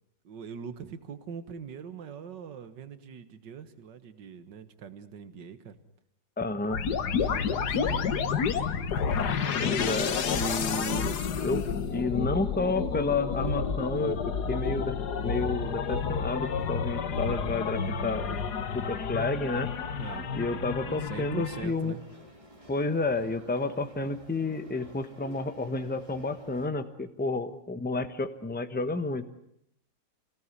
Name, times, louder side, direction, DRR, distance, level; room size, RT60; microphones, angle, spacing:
voice 1, 0.2-5.8 7.2-8.1 20.0-22.0, right 7 dB, 70° right, 11 dB, 2.1 m, -43 dB
voice 2, 6.4-6.8 9.6-11.6 11.9-14.9 15.2-18.4 18.7-19.7 20.3-21.9 22.7-29.2, left 3 dB, 5° left, 9 dB, 1.0 m, -31 dB
sound 1, 6.7-21.7, left 6 dB, 65° left, 1.8 m, -30 dB
sound 2, 21.6-26.7, equal, 15° right, 3.3 m, -53 dB
26.0 x 17.5 x 9.8 m, 0.75 s
omnidirectional pair, 2.0 m